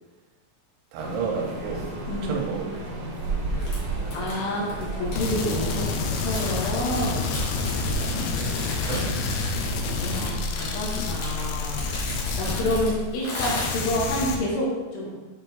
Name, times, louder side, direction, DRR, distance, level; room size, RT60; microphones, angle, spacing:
voice 1, 0.9-2.8 8.0-9.3, right 5 dB, 85° right, 0 dB, 3.3 m, -32 dB
sound 1, 1.0-6.2, right 2 dB, 70° right, 2.1 m, -32 dB
voice 2, 2.1-2.4 4.1-7.3 10.0-15.1, left 1 dB, 75° left, -4 dB, 3.9 m, -29 dB
sound 2, 3.6-14.2, left 1 dB, 50° left, 2.0 m, -36 dB
sound 3, 5.2-13.1 13.4-14.4, left 4 dB, 90° left, 2.4 m, -29 dB
9.0 x 3.5 x 4.5 m, 1.2 s
omnidirectional pair, 5.7 m